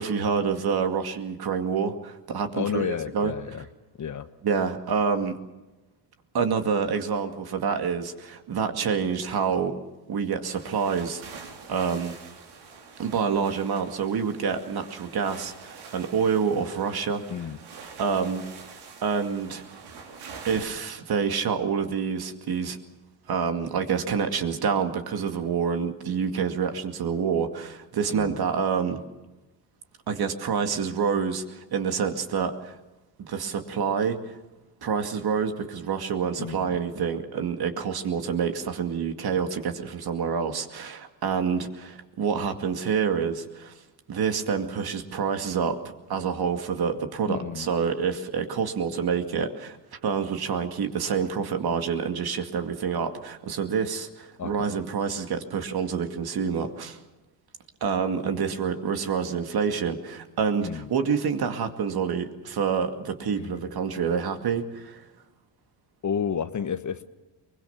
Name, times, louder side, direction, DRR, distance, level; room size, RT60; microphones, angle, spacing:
voice 1, 0.0-3.3 4.4-5.4 6.3-9.8 10.1-11.2 11.7-12.1 13.0-17.2 18.0-18.7 19.0-19.6 20.5-22.8 23.3-29.0 30.1-32.8 33.2-34.4 34.8-43.7 44.1-45.8 46.1-57.0 57.8-65.0, right 6 dB, 50° right, 6 dB, 2.3 m, -27 dB
voice 2, 2.5-3.7 4.0-4.3 17.3-17.6 28.1-28.4 36.4-36.8 47.3-47.7 54.4-54.8 60.6-60.9 63.3-63.6 66.0-67.0, left 7 dB, 35° left, 11 dB, 1.2 m, -31 dB
sound 1, 10.4-20.7, right 5 dB, 80° right, 4.1 m, -45 dB
23.0 x 21.0 x 7.2 m, 1.1 s
supercardioid pair, 85°, 48 cm